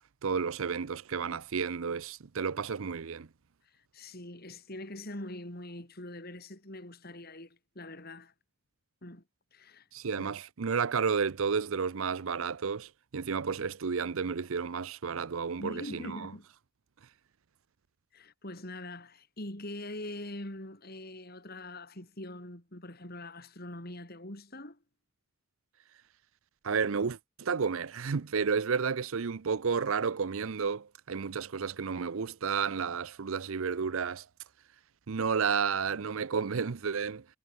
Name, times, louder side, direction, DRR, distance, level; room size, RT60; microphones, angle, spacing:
voice 1, 0.2-3.3 9.9-16.3 26.6-34.3 35.1-37.2, right 5 dB, 65° right, 0.6 m, -31 dB
voice 2, 3.6-8.3 9.0-9.2 9.5-9.9 10.2-10.3 15.6-16.5 18.1-24.8, left 1 dB, 45° left, 3.6 m, -43 dB
head